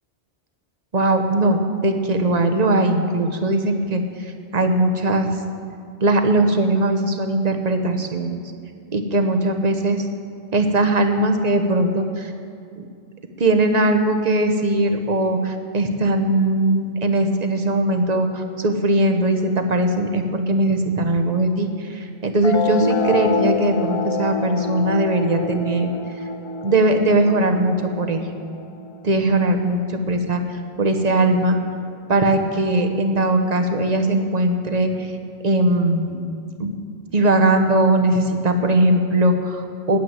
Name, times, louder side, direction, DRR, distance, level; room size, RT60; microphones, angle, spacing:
voice 1, 0.9-5.3 6.0-8.4 8.9-10.0 10.5-12.3 12.8-12.9 13.4-25.9 26.6-28.3 29.0-30.4 30.8-31.6 32.1-35.1 35.4-36.2 36.6-36.8 37.1-40.0, right 1 dB, 40° right, 5 dB, 1.1 m, -20 dB
sound 1, 22.4-29.4, left 4 dB, 40° left, 0.4 m, -27 dB
9.8 x 9.3 x 8.9 m, 2.4 s
omnidirectional pair, 1.1 m